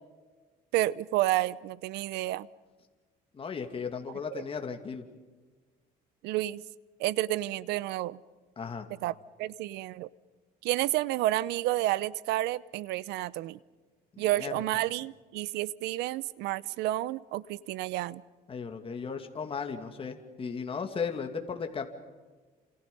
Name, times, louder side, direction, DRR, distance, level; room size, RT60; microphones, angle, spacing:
voice 1, 0.7-2.5 4.3-4.4 6.2-6.6 7.0-8.2 9.0-10.1 10.6-13.6 14.2-18.2, right 16 dB, 90° right, 20 dB, 0.8 m, -30 dB
voice 2, 3.3-5.0 8.6-8.9 14.1-14.5 18.5-21.9, left 5 dB, 35° left, 5 dB, 2.5 m, -36 dB
29.5 x 27.5 x 5.5 m, 1.4 s
cardioid pair, 110°, 17 cm